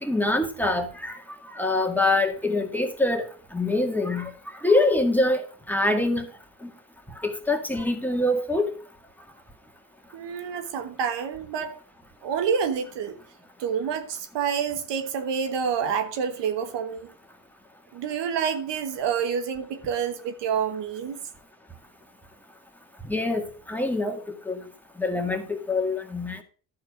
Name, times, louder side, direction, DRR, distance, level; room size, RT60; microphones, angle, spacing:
voice 1, 0.0-1.2 1.5-4.3 4.6-6.3 7.2-8.7 23.1-24.6 25.0-26.4, left 2 dB, 5° left, 1.9 m, -25 dB
voice 2, 10.1-11.8 12.2-13.2 13.6-17.1 17.9-21.2, right 7 dB, 70° right, 1.3 m, -28 dB
11.5 x 4.5 x 6.4 m
cardioid pair, 80°, 44 cm